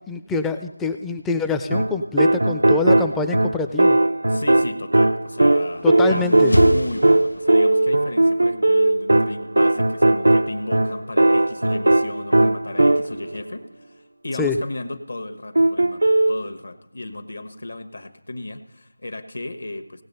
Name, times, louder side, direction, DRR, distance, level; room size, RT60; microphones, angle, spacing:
voice 1, 0.1-4.0 5.8-6.5 14.4-14.6, left 3 dB, 5° left, 7 dB, 0.4 m, -25 dB
sound 1, 1.7-13.3 15.6-16.4, right 2 dB, 80° right, 0.4 m, -18 dB
voice 2, 4.3-20.0, left 2 dB, 70° left, 9 dB, 1.1 m, -34 dB
sound 2, 5.5-7.9, left 1 dB, 90° left, 0.4 m, -27 dB
18.0 x 7.4 x 5.4 m, 0.87 s
figure-of-eight pair, 170°, 0 cm